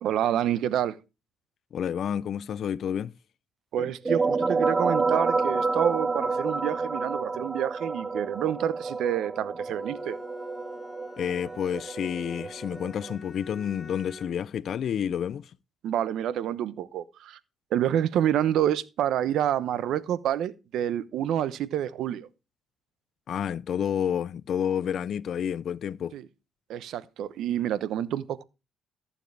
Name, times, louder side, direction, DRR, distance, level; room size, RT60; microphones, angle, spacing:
voice 1, 0.0-1.0 3.7-10.2 15.8-17.4 17.7-22.3 26.1-26.3 26.7-28.4, right 10 dB, 80° right, 0.9 m, -28 dB
voice 2, 1.7-3.1 11.2-15.5 23.3-26.2, left 8 dB, 65° left, 0.5 m, -30 dB
sound 1, 3.8-13.2, right 4 dB, 25° right, 0.7 m, -29 dB
Bowed string instrument, 9.6-14.5, left 2 dB, 25° left, 3.3 m, -47 dB
14.5 x 7.0 x 3.4 m
cardioid pair, 90°, 0 cm